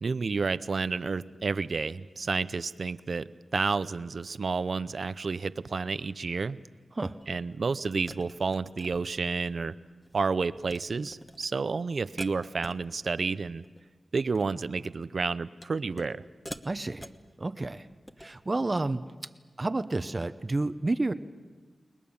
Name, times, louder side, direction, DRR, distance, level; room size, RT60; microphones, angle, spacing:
voice 1, 0.0-6.6 7.3-9.7 10.1-13.6 14.1-16.2, right 4 dB, 65° right, 15 dB, 0.7 m, -30 dB
sound 1, 7.2-7.3 8.1-9.6 9.9-10.2 10.5-10.8 11.1-11.5 12.2-13.2 13.5-13.8 14.2-14.7 15.6-16.2 16.5-17.3 17.9-18.3, equal, 5° left, 1.4 m, -45 dB
voice 2, 16.6-17.1 17.4-17.9 18.2-19.0 19.6-21.1, right 2 dB, 35° right, 11 dB, 0.9 m, -30 dB
29.5 x 20.5 x 7.2 m, 1.4 s
wide cardioid pair, 65°, 0 cm